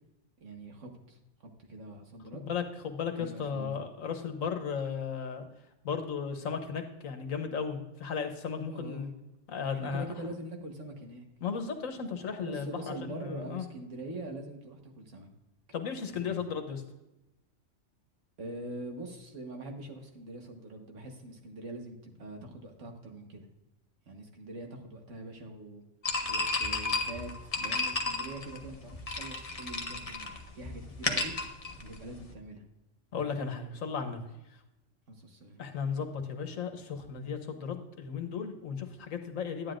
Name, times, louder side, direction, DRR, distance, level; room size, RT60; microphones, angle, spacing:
voice 1, 0.4-2.5 3.1-3.8 8.7-9.1 9.7-11.3 12.4-15.3 16.1-16.4 18.4-23.5 24.0-25.8 26.3-31.3 31.8-32.6 35.1-35.6, right 2 dB, 70° right, 3 dB, 1.7 m, -43 dB
voice 2, 2.3-5.5 5.8-9.1 9.5-10.0 11.4-13.6 15.7-16.8 33.1-34.2 35.6-39.7, left 6 dB, 85° left, 5 dB, 1.5 m, -35 dB
sound 1, 26.0-32.3, left 3 dB, 30° left, 0.9 m, -33 dB
10.5 x 9.8 x 2.5 m, 0.94 s
omnidirectional pair, 1.3 m